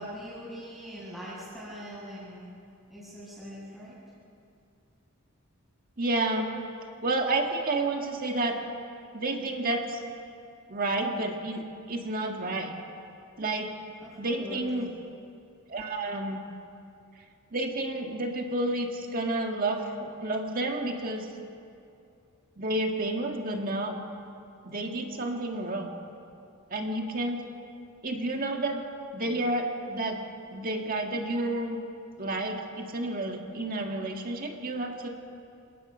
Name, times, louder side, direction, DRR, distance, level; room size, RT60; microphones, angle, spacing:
voice 1, 0.0-2.5 2.9-3.9 14.0-14.7, equal, ahead, -9 dB, 7.0 m, -42 dB
voice 2, 6.0-6.5 7.0-8.6 9.1-10.0 10.7-12.7 13.4-13.7 14.2-14.9 15.7-16.4 17.5-21.3 22.6-24.0 24.7-25.9 26.7-27.5 28.0-28.8 29.1-30.2 30.5-31.8 32.2-35.1, right 2 dB, 45° right, 2 dB, 1.8 m, -30 dB
28.0 x 18.5 x 5.5 m, 2.5 s
head